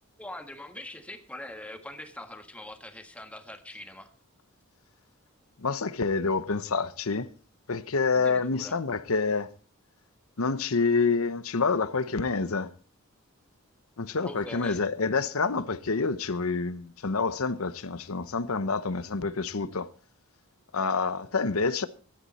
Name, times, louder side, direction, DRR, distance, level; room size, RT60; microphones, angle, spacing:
voice 1, 0.2-4.1 8.1-8.7 14.2-14.8, left 1 dB, 5° left, 1.5 m, -42 dB
voice 2, 5.6-7.3 7.7-9.5 10.4-12.7 14.0-19.9 20.7-21.9, left 4 dB, 75° left, 0.9 m, -27 dB
15.5 x 11.5 x 4.2 m
head